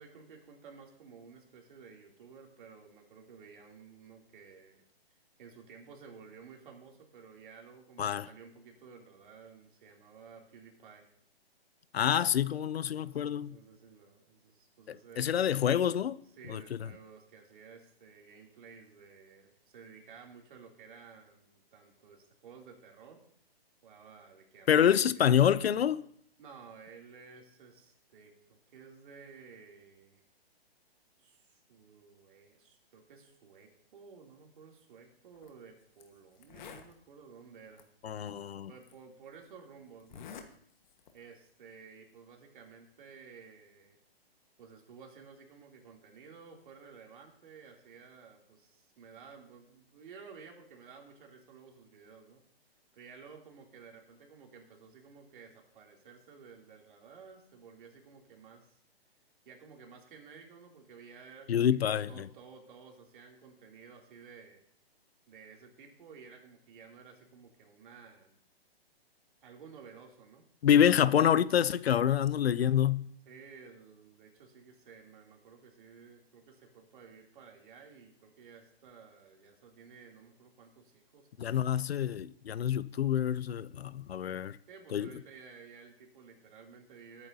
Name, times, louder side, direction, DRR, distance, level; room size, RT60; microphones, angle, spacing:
voice 1, 0.0-4.8 5.4-11.1 12.9-15.4 16.4-23.2 23.8-25.3 26.4-30.2 31.2-37.9 38.7-40.3 41.1-44.0 44.6-52.4 52.9-58.8 59.4-64.6 65.3-68.4 69.4-70.4 73.3-81.6 84.7-87.3, right 5 dB, 55° right, 2.9 m, -54 dB
voice 2, 11.9-13.6 15.2-16.2 16.5-16.9 24.7-26.0 38.0-38.7 61.5-62.3 70.6-73.1 81.4-84.6 84.9-85.1, left 9 dB, 75° left, 0.6 m, -27 dB
Zipper (clothing), 35.3-35.5 36.0-36.1 36.4-36.9 37.8-37.9 38.8-38.9 40.0-40.5 40.8-41.2, left 7 dB, 45° left, 1.4 m, -48 dB
19.0 x 9.2 x 2.7 m
hypercardioid pair, 140°, 31 cm